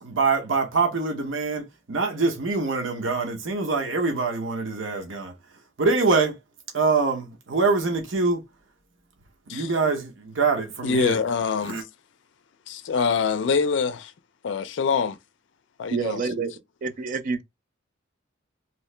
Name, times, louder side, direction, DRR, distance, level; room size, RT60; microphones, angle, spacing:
voice 1, 0.0-5.3 5.8-6.4 6.7-8.4 9.5-11.2 11.6-11.8, right 4 dB, 75° right, 0.8 m, -24 dB
voice 2, 10.8-11.8 12.7-14.1 14.4-15.2 15.8-16.2, left 5 dB, 65° left, 0.4 m, -25 dB
voice 3, 15.9-16.5 16.8-17.4, right 4 dB, 45° right, 0.4 m, -27 dB
3.0 x 2.8 x 3.2 m
head